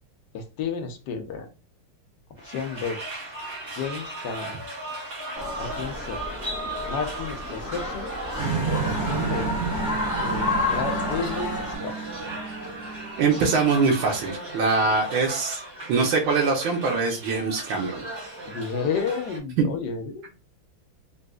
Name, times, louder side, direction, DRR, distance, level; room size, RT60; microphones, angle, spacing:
voice 1, 0.3-1.5 2.4-3.0 3.8-4.5 5.6-6.2 6.9-8.1 8.6-9.5 10.2-11.9 18.5-20.4, left 5 dB, 70° left, 5 dB, 1.1 m, -32 dB
sound 1, 2.4-19.4, right 1 dB, 50° right, 1.8 m, -37 dB
sound 2, 5.3-11.8, left 2 dB, 5° right, 0.5 m, -31 dB
sound 3, 8.4-14.0, right 5 dB, 35° right, 1.5 m, -31 dB
voice 2, 13.2-15.6 15.9-18.1 19.6-19.7, right 4 dB, 75° right, 0 dB, 1.5 m, -23 dB
4.1 x 2.5 x 2.2 m, 0.30 s
omnidirectional pair, 2.3 m